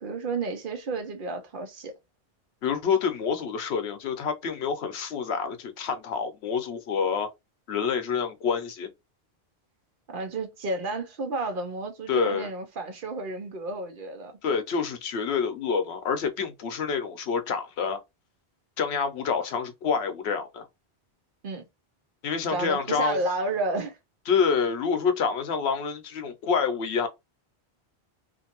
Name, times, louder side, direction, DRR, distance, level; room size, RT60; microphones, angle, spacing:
voice 1, 0.0-1.9 10.1-14.3 21.4-21.6 22.5-24.0, right 2 dB, 55° right, 0.8 m, -31 dB
voice 2, 2.6-7.3 7.7-8.9 12.1-12.5 14.4-18.0 18.8-20.7 22.2-23.2 24.3-27.1, left 6 dB, 75° left, 0.9 m, -27 dB
2.6 x 2.5 x 2.8 m
omnidirectional pair, 1.1 m